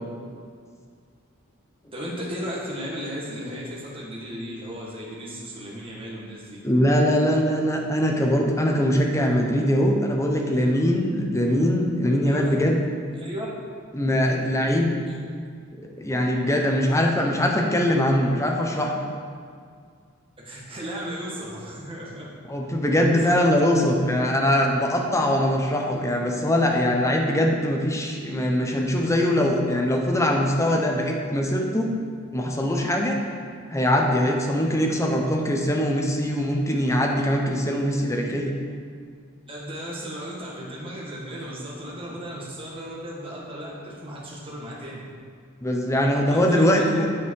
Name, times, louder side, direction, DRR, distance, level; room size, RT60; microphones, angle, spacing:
voice 1, 1.9-6.6 12.3-12.4 13.2-13.5 15.1-15.2 20.4-22.2 23.1-23.3 39.5-45.0 46.3-47.1, equal, 25° right, -5 dB, 1.7 m, -35 dB
voice 2, 6.6-12.8 13.9-15.0 15.7-19.0 22.5-31.9 32.3-33.2 33.7-38.5 45.6-47.1, equal, 15° left, 1 dB, 0.8 m, -22 dB
8.8 x 5.4 x 4.7 m, 2.1 s
head